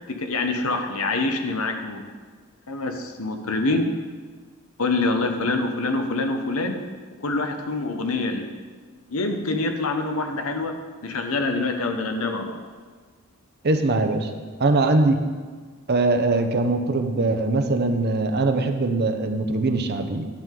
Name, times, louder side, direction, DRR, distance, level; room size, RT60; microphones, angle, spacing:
voice 1, 0.1-2.0 2.7-3.9 4.8-6.8 7.2-8.5 9.1-10.7 11.0-12.6, left 3 dB, 90° left, 5 dB, 1.0 m, -25 dB
voice 2, 13.6-14.3 14.6-15.2 15.9-20.3, right 2 dB, 50° right, 7 dB, 0.7 m, -21 dB
10.5 x 7.5 x 3.8 m, 1.5 s
head